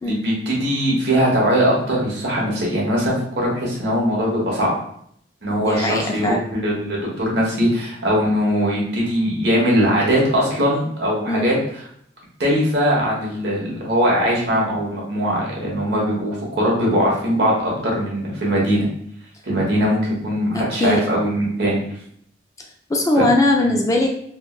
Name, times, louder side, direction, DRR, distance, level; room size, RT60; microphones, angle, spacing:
voice 1, 0.0-4.8 5.4-11.6 12.4-18.9 19.5-21.8 23.1-23.2 23.6-23.7, equal, 65° right, -4 dB, 1.1 m, -20 dB
voice 2, 5.6-6.4 11.3-11.5 20.5-21.0 22.9-24.1, left 2 dB, 20° left, 1 dB, 0.3 m, -20 dB
4.3 x 2.1 x 2.3 m, 0.68 s
head